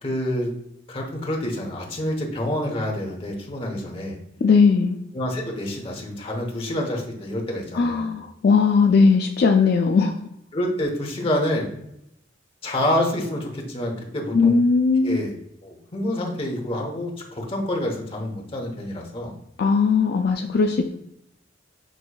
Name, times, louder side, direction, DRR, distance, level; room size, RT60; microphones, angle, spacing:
voice 1, 0.0-0.5 0.9-4.2 5.1-8.1 10.5-11.7 12.6-14.6 15.0-15.4 15.6-19.3, left 1 dB, 30° left, 0 dB, 1.0 m, -27 dB
voice 2, 4.4-5.0 7.7-10.1 14.3-15.2 19.6-20.8, left 4 dB, 60° left, 3 dB, 0.3 m, -18 dB
6.2 x 3.0 x 2.3 m, 0.80 s
head